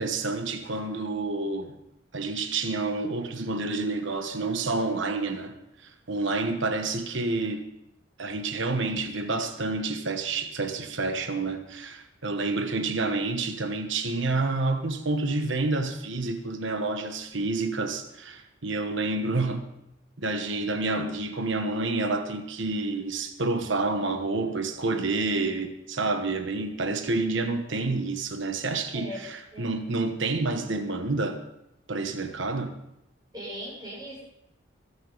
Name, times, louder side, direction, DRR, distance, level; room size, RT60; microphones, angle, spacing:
voice 1, 0.0-1.8 2.1-7.7 8.2-19.7 20.2-31.4 31.9-32.8, right 3 dB, 65° right, 1.2 m, -29 dB
voice 2, 33.3-34.2, equal, 20° right, 6.7 m, -39 dB
23.0 x 9.5 x 4.0 m
head